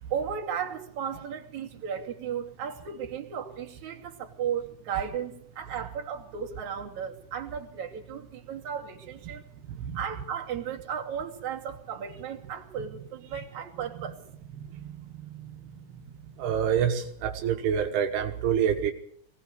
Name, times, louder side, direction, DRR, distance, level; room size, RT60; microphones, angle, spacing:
voice 1, 0.1-9.4 9.9-14.2, right 8 dB, 50° right, 0 dB, 3.9 m, -35 dB
voice 2, 16.4-18.9, right 8 dB, 80° right, 5 dB, 3.3 m, -26 dB
22.5 x 18.5 x 6.8 m, 0.67 s
omnidirectional pair, 4.5 m